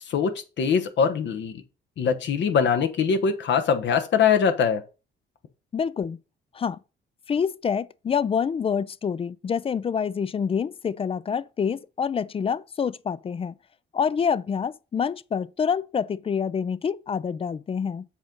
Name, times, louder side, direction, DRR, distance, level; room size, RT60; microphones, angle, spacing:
voice 1, 0.6-1.5 2.0-4.8, left 6 dB, 65° left, 1.1 m, -22 dB
voice 2, 5.7-6.2 6.5-6.8 7.3-13.6 13.9-18.0, left 7 dB, 30° left, 0.4 m, -27 dB
7.2 x 3.8 x 5.3 m
cardioid pair, 90°, 20 cm